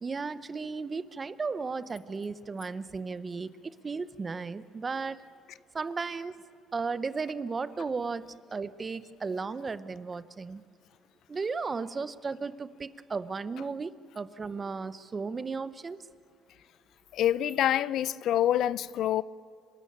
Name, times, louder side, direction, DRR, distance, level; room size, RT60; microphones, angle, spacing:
voice 1, 0.0-5.2 5.7-6.3 6.7-10.6 11.3-16.0, right 4 dB, 25° right, 0.7 m, -35 dB
voice 2, 17.1-19.2, left 11 dB, 65° left, 0.4 m, -26 dB
25.5 x 13.5 x 8.7 m
cardioid pair, 110°, 0 cm